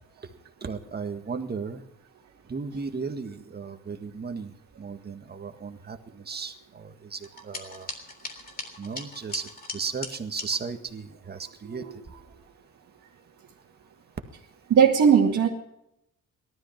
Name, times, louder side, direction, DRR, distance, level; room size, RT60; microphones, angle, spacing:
voice 1, 0.6-1.8 2.5-7.9 8.8-11.8, right 5 dB, 30° right, 6 dB, 1.8 m, -35 dB
sound 1, 7.2-10.5, left 3 dB, 30° left, 3.5 m, -39 dB
voice 2, 14.7-15.5, right 7 dB, 65° right, -3 dB, 2.2 m, -19 dB
18.0 x 13.0 x 5.9 m, 0.82 s
cardioid pair, 125°, 31 cm